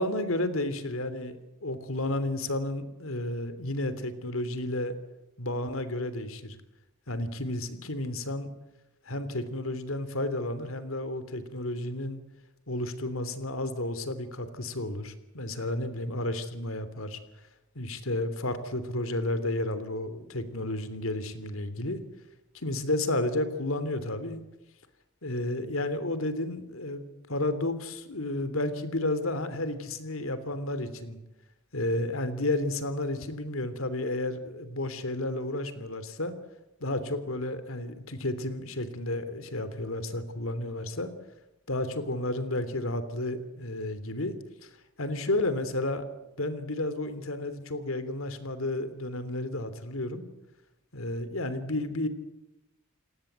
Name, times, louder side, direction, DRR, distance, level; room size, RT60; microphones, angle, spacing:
voice 1, 0.0-5.0 5.4-6.6 7.1-8.5 9.1-12.2 12.7-17.2 17.7-22.0 22.5-24.4 25.2-31.2 31.7-36.3 36.8-41.1 41.7-44.3 44.6-44.7 45.0-46.1 46.4-50.2 50.9-52.1, left 1 dB, 90° left, 12 dB, 3.1 m, -32 dB
29.5 x 19.5 x 8.1 m, 0.93 s
head